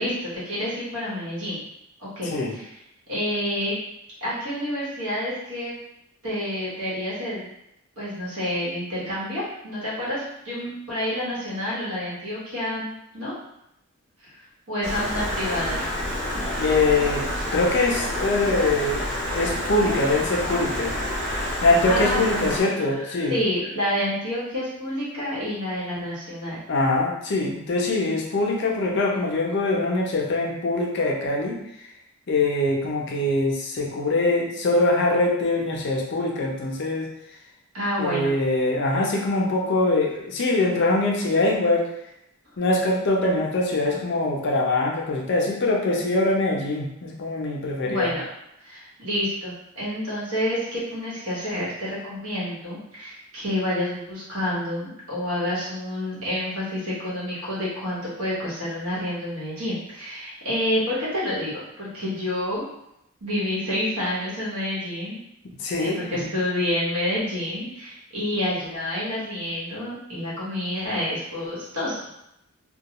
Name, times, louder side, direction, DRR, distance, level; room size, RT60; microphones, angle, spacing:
voice 1, 0.0-1.6 2.0-2.7 3.1-3.8 4.2-5.8 6.2-7.5 8.0-13.3 14.2-14.3 14.7-15.9 21.9-26.6 37.7-38.4 47.8-48.2 48.6-62.6 63.2-65.2 65.8-72.0, left 1 dB, 85° right, -7 dB, 1.1 m, -28 dB
Stream, 14.8-22.6, left 1 dB, 55° right, 0.7 m, -28 dB
voice 2, 16.6-17.2 17.5-19.1 19.3-20.9 21.6-23.4 26.7-31.6 32.3-37.1 38.0-41.8 42.6-48.2 65.6-66.0, left 2 dB, 50° left, -1 dB, 0.5 m, -23 dB
2.3 x 2.2 x 2.9 m, 0.81 s
head